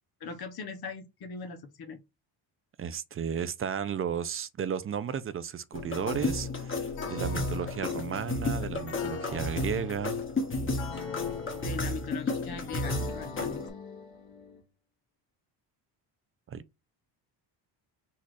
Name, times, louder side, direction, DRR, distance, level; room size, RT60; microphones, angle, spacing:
voice 1, 0.2-2.0 11.6-13.6, left 5 dB, 55° left, 1.0 m, -40 dB
voice 2, 2.8-10.2 16.5-16.7, right 8 dB, 30° right, 0.4 m, -34 dB
sound 1, 5.7-13.7, left 2 dB, 25° left, 1.4 m, -33 dB
sound 2, 7.0-14.6, left 4 dB, 75° left, 1.8 m, -43 dB
4.2 x 2.4 x 4.6 m
cardioid pair, 105°, 46 cm